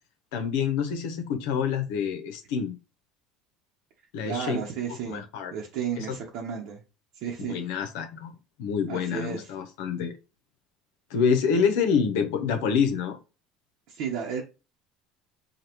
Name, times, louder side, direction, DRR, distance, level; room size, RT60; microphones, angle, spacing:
voice 1, 0.3-2.8 4.1-4.6 5.1-5.5 6.0-6.1 7.4-8.3 8.6-10.1 11.1-13.2, left 6 dB, 85° left, 0.8 m, -27 dB
voice 2, 4.2-6.8 7.2-7.6 8.9-9.5 13.9-14.4, right 7 dB, 65° right, 0.9 m, -33 dB
5.1 x 2.4 x 3.0 m
cardioid pair, 140°, 0 cm